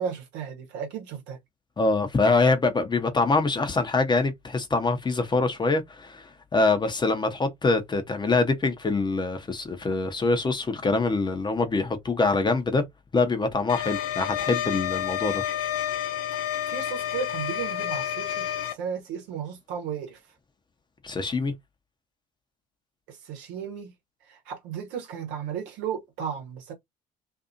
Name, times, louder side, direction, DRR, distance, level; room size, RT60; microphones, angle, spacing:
voice 1, 0.0-1.4 16.3-18.5 18.7-20.2 23.1-23.9 24.3-26.7, right 7 dB, 65° right, 1.1 m, -34 dB
voice 2, 1.8-12.8 13.1-15.4 21.0-21.5, left 3 dB, 25° left, 0.8 m, -24 dB
sound 1, 13.7-18.7, left 11 dB, 75° left, 0.6 m, -29 dB
2.6 x 2.6 x 2.5 m
hypercardioid pair, 60°, 19 cm